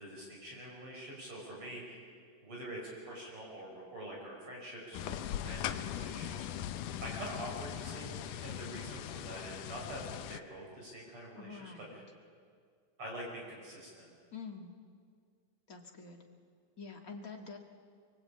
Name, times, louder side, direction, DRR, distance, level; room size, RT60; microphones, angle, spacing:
voice 1, 0.0-2.0 2.4-6.3 7.0-10.0 10.3-12.0 13.0-14.1, right 1 dB, 40° right, -2 dB, 6.4 m, -45 dB
sound 1, 4.9-10.4, left 11 dB, 75° left, 2.2 m, -40 dB
voice 2, 11.4-11.9 14.3-14.7 15.7-16.2 16.8-17.6, left 5 dB, 35° left, 2 dB, 1.6 m, -47 dB
24.5 x 23.0 x 8.6 m, 2.1 s
omnidirectional pair, 4.0 m